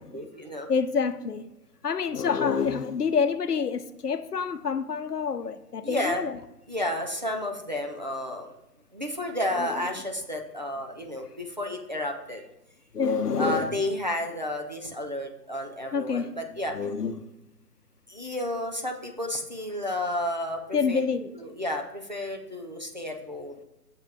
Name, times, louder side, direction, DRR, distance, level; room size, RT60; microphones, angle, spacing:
voice 1, 0.1-0.7 5.8-6.3 6.7-8.5 8.9-12.4 13.4-16.7 18.1-21.0 21.3-23.6, left 1 dB, 30° right, 0.5 m, -31 dB
voice 2, 0.7-1.4 1.8-6.3 9.6-9.7 12.9-13.7 15.9-16.3 16.7-17.2 20.7-21.3, left 5 dB, 70° left, 0.8 m, -27 dB
6.5 x 5.4 x 4.8 m
figure-of-eight pair, 150°, 48 cm